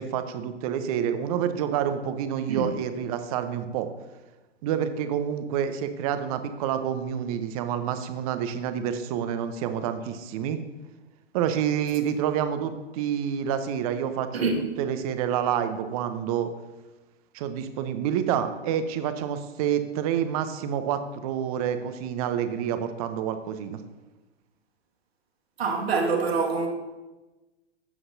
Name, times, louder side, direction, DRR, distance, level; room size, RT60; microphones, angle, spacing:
voice 1, 0.0-3.9 4.6-10.6 11.3-14.5 14.8-16.5 17.3-23.8, right 9 dB, 35° right, 0.8 m, -28 dB
voice 2, 14.3-14.6 25.6-26.7, right 4 dB, 65° right, 1.9 m, -25 dB
12.0 x 7.7 x 2.7 m
figure-of-eight pair, 110°, 34 cm